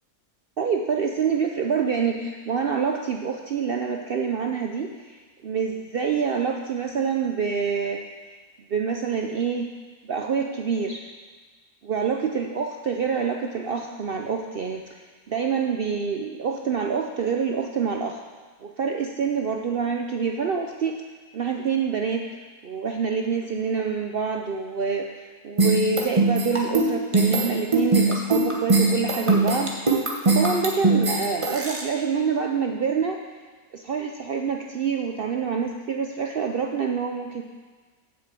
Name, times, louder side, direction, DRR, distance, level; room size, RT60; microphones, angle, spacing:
voice 1, 0.6-8.0 8.7-9.7 10.0-11.1 11.8-14.8 15.3-18.2 18.6-21.0 21.3-22.2 22.6-33.2 33.7-37.4, right 6 dB, 70° right, 2 dB, 0.5 m, -26 dB
sound 1, 25.6-31.8, right 2 dB, 20° right, 1.1 m, -21 dB
7.9 x 6.0 x 7.6 m, 1.4 s
omnidirectional pair, 1.7 m